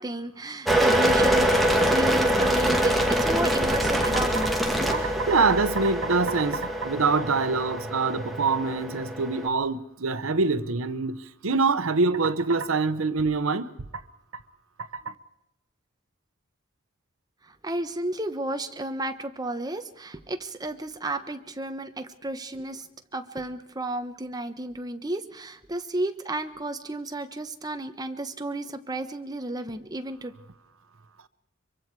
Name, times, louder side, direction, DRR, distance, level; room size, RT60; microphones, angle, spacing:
voice 1, 0.0-5.4 17.4-22.9 23.1-30.3, right 2 dB, 20° right, 1.1 m, -33 dB
sound 1, 0.7-9.5, equal, ahead, 2.3 m, -24 dB
voice 2, 4.9-13.7 14.8-15.1, right 4 dB, 85° right, 0.9 m, -25 dB
24.0 x 23.5 x 4.7 m
head